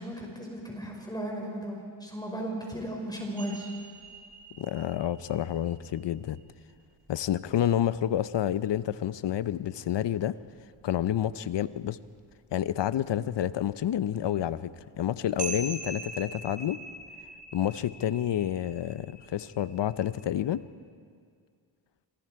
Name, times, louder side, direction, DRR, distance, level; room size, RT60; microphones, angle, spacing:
voice 1, 0.0-3.7, right 1 dB, 10° left, 0 dB, 5.0 m, -36 dB
sound 1, 3.4-9.6 10.0-10.1 10.4-11.8 12.2-12.3 12.6-20.6, right 3 dB, 55° right, 2.4 m, -44 dB
voice 2, 4.6-6.4 7.1-10.4 10.8-12.0 12.5-16.8 17.5-20.6, left 11 dB, 60° left, 15 dB, 0.8 m, -29 dB
27.0 x 22.0 x 4.8 m, 2.1 s
cardioid pair, 75°, 47 cm